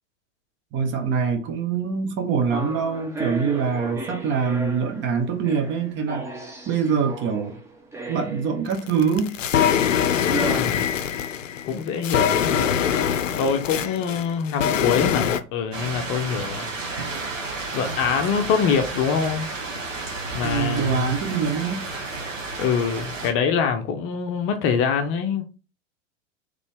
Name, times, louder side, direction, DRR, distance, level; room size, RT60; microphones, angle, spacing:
voice 1, 0.7-6.3 6.7-7.6 8.1-9.3 20.4-21.8, right 6 dB, 30° right, 0.9 m, -24 dB
sound 1, 2.5-8.9 10.3-10.6, right 2 dB, 5° right, 0.7 m, -34 dB
sound 2, 8.7-15.4, left 8 dB, 80° left, 0.5 m, -23 dB
voice 2, 10.4-10.9 11.7-12.8 13.4-17.2 17.7-19.5 20.3-21.1 22.6-25.4, left 6 dB, 35° left, 0.7 m, -25 dB
sound 3, 15.7-23.3, right 3 dB, 80° right, 1.2 m, -32 dB
4.0 x 3.2 x 3.4 m
figure-of-eight pair, 90°, 38 cm